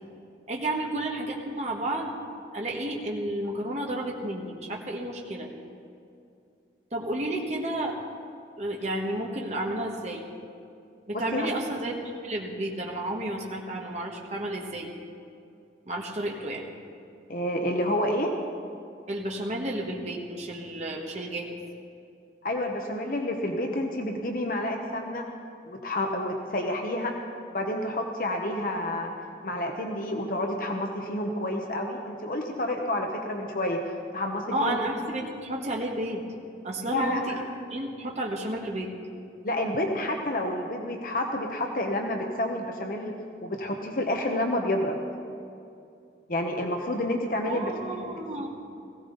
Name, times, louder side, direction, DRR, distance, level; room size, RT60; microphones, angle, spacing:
voice 1, 0.5-2.1 2.5-5.5 6.9-8.0 8.6-10.3 11.1-11.9 12.2-14.9 15.9-16.6 19.1-21.6 34.5-36.2 36.6-37.2 37.7-38.9 47.5-48.5, right 1 dB, 40° right, -1 dB, 1.3 m, -31 dB
voice 2, 11.1-11.5 17.3-18.4 22.4-25.2 25.7-27.1 27.5-29.1 29.4-33.8 34.1-34.8 36.9-37.4 39.4-43.1 43.4-45.0 46.3-48.1, left 1 dB, 50° left, 3 dB, 1.0 m, -29 dB
16.5 x 16.0 x 3.9 m, 2.5 s
head